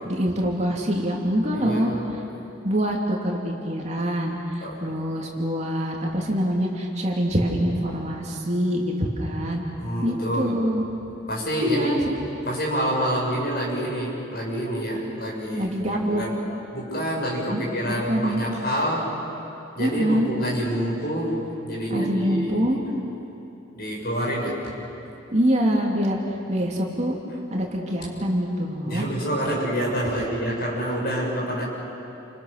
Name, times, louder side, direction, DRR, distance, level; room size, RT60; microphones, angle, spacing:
voice 1, 0.1-1.9 2.6-9.6 10.0-10.8 11.6-12.1 15.6-16.2 17.5-17.6 18.1-18.4 19.8-20.3 21.9-22.8 25.3-26.2 26.5-27.2 27.5-29.0, equal, 35° right, -1 dB, 3.0 m, -25 dB
voice 2, 1.5-2.2 4.6-4.9 9.8-10.6 11.3-12.1 12.5-15.7 16.0-16.4 16.7-19.2 19.8-22.7 23.8-24.7 28.8-31.6, equal, 50° left, -3 dB, 7.1 m, -27 dB
29.5 x 28.0 x 6.8 m, 2.9 s
head